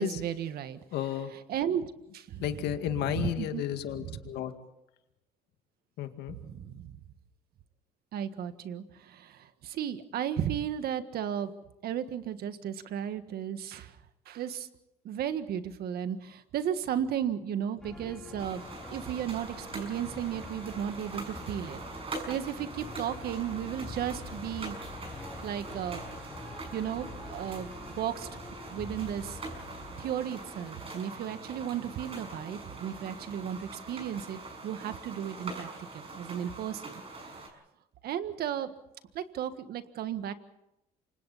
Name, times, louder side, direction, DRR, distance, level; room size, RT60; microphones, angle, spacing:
voice 1, 0.0-0.8 1.5-2.4 3.1-3.6 4.1-4.2 6.3-7.0 8.1-11.5 11.8-14.0 14.2-14.7 15.0-18.6 18.9-21.8 22.3-25.1 25.4-26.0 26.7-27.7 28.0-28.3 28.7-29.4 30.0-36.8 38.0-38.7 39.1-40.3, right 9 dB, 65° right, 10 dB, 1.7 m, -34 dB
voice 2, 0.9-1.3 2.4-4.5 6.0-6.4, left 11 dB, 80° left, 7 dB, 2.1 m, -33 dB
sound 1, 17.8-31.0, left 2 dB, 5° left, 4.5 m, -46 dB
sound 2, 18.4-37.5, right 3 dB, 35° right, 6.7 m, -43 dB
28.5 x 25.5 x 4.2 m, 0.88 s
cardioid pair, 110°, 17 cm